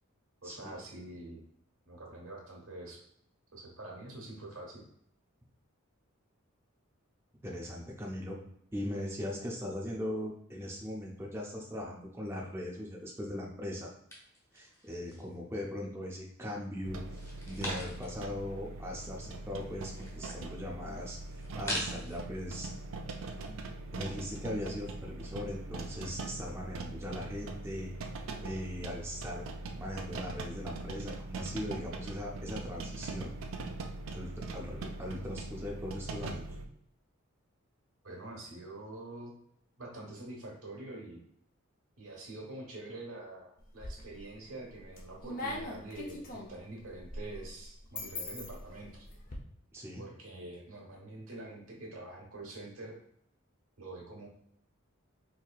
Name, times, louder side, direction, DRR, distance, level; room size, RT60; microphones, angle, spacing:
voice 1, 0.4-1.4 1.9-3.0 3.5-4.8 15.1-15.2 38.0-39.3 39.8-41.2 42.0-49.0 50.0-52.9 53.8-54.3, right 2 dB, 85° right, -2 dB, 1.2 m, -46 dB
voice 2, 7.4-8.4 8.7-13.9 14.5-17.0 17.5-22.7 23.4-23.6 23.9-27.9 28.4-29.4 29.8-33.3 34.1-36.5 49.7-50.0, left 1 dB, 10° right, -2 dB, 0.4 m, -39 dB
sound 1, 14.1-15.4 15.8-16.5 17.0-18.3 18.6-18.7 18.9-22.2, equal, 15° left, 0.9 m, -42 dB
sound 2, 16.8-36.7, right 3 dB, 65° right, 0.4 m, -42 dB
sound 3, 43.6-44.3 44.7-49.4, left 2 dB, 40° left, 0.6 m, -42 dB
4.3 x 2.7 x 2.3 m, 0.70 s
head